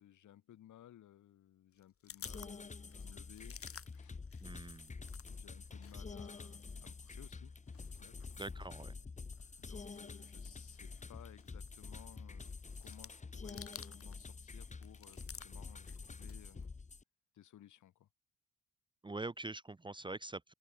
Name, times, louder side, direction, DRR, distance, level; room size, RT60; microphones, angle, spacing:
voice 1, 0.0-3.6 3.9-4.2 5.3-7.5 7.8-8.2 9.6-12.5 12.8-16.7 17.3-18.1, left 12 dB, 75° left, 7.6 m, -59 dB
sound 1, 1.7-5.4 5.6-14.2 14.5-16.7, left 8 dB, 50° left, 2.7 m, -55 dB
sound 2, 2.2-17.0, left 4 dB, 25° left, 1.5 m, -48 dB
voice 2, 4.4-4.9 8.4-9.0 19.0-20.5, right 2 dB, 15° right, 0.8 m, -44 dB
cardioid pair, 90°, 30 cm